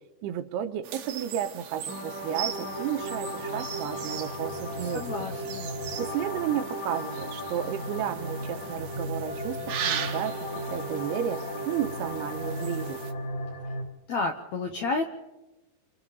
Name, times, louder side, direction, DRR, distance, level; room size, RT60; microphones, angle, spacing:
voice 1, 0.2-5.0 6.0-13.0, right 10 dB, 85° right, 8 dB, 3.0 m, -32 dB
sound 1, 0.8-13.1, right 8 dB, 65° right, 1.7 m, -39 dB
sound 2, 1.9-13.8, equal, 45° left, 4.1 m, -35 dB
voice 2, 4.8-5.6 14.1-15.1, left 3 dB, 75° left, 4 dB, 1.6 m, -31 dB
29.5 x 25.5 x 4.1 m, 1.0 s
omnidirectional pair, 4.6 m